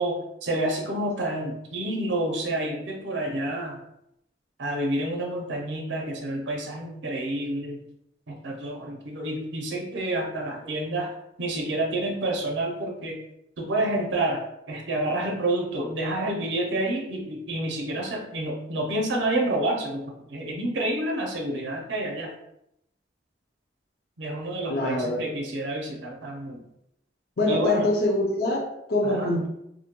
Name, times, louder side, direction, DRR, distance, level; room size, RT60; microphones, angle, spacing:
voice 1, 0.0-3.8 4.6-7.8 8.3-11.1 11.4-13.2 13.6-22.3 24.2-26.6 27.5-27.9 29.0-29.3, right 1 dB, 75° right, 0 dB, 0.5 m, -29 dB
voice 2, 24.7-25.2 27.4-29.5, left 1 dB, 55° left, 0 dB, 0.5 m, -24 dB
2.6 x 2.1 x 2.8 m, 0.79 s
head